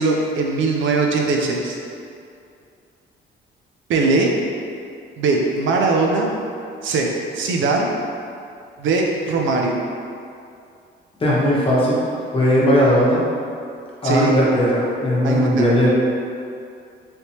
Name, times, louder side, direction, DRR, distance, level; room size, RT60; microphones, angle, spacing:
voice 1, 0.0-1.8 3.9-4.3 5.2-6.3 6.8-7.1 7.3-7.9 8.8-9.8 14.0-14.3 15.2-15.7, right 3 dB, 75° right, 1 dB, 0.5 m, -20 dB
voice 2, 11.2-12.0 12.3-13.2 14.0-15.9, equal, 25° left, -7 dB, 1.0 m, -17 dB
3.4 x 2.9 x 2.8 m, 2.4 s
cardioid pair, 90°, 20 cm